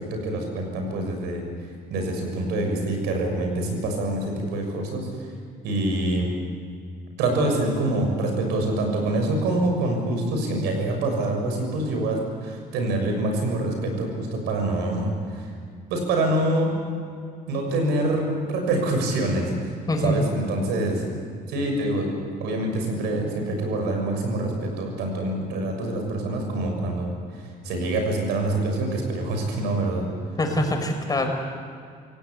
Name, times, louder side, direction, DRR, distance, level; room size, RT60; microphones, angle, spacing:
voice 1, 0.0-1.4 1.9-5.1 5.6-6.4 7.2-15.5 15.9-16.7 17.5-19.7 20.0-21.0 21.5-22.1 22.4-30.1, right 2 dB, 90° right, 3 dB, 6.7 m, -25 dB
voice 2, 19.9-20.2 30.4-31.3, left 1 dB, 20° left, 4 dB, 4.9 m, -24 dB
27.5 x 17.5 x 8.6 m, 2.2 s
cardioid pair, 110°, 17 cm